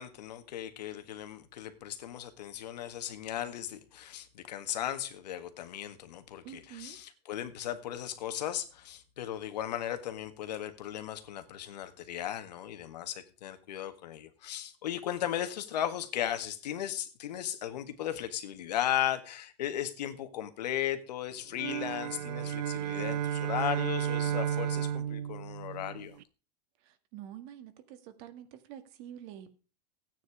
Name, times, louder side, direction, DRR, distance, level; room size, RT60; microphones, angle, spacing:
voice 1, 0.0-26.2, left 11 dB, 90° left, 1.6 m, -36 dB
voice 2, 6.4-7.0 26.9-29.5, right 11 dB, 55° right, 1.9 m, -47 dB
sound 1, 21.5-26.2, right 10 dB, 85° right, 0.7 m, -33 dB
13.5 x 9.3 x 4.9 m
supercardioid pair, 135°, 21 cm